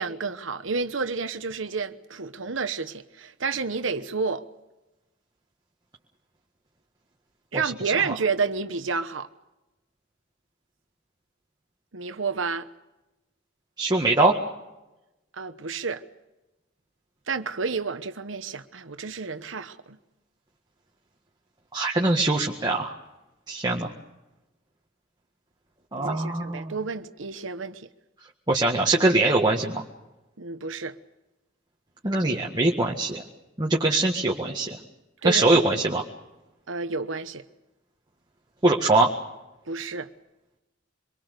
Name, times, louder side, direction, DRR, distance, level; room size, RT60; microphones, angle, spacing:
voice 1, 0.0-4.4 7.5-9.3 11.9-12.7 15.3-16.0 17.3-20.0 26.0-27.9 30.4-31.0 35.2-35.8 36.7-37.4 39.7-40.1, right 4 dB, 70° right, 1.1 m, -30 dB
voice 2, 13.8-14.4 21.7-22.9 23.5-23.9 25.9-26.7 28.5-29.8 32.0-33.2 33.6-34.8 35.2-36.0 38.6-39.1, right 2 dB, 20° right, 1.8 m, -22 dB
25.5 x 23.0 x 6.7 m
head